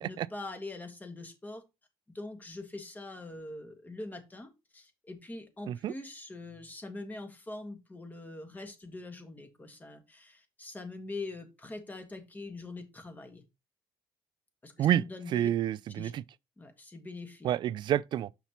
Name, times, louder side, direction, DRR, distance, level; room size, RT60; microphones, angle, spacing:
voice 1, 0.0-1.6 2.1-13.4 14.6-15.5 16.0-16.1 16.6-17.5, left 2 dB, 20° left, 1.5 m, -43 dB
voice 2, 15.3-16.2 17.4-18.3, right 11 dB, 55° right, 0.3 m, -28 dB
6.9 x 5.8 x 3.0 m
cardioid pair, 115°, 10 cm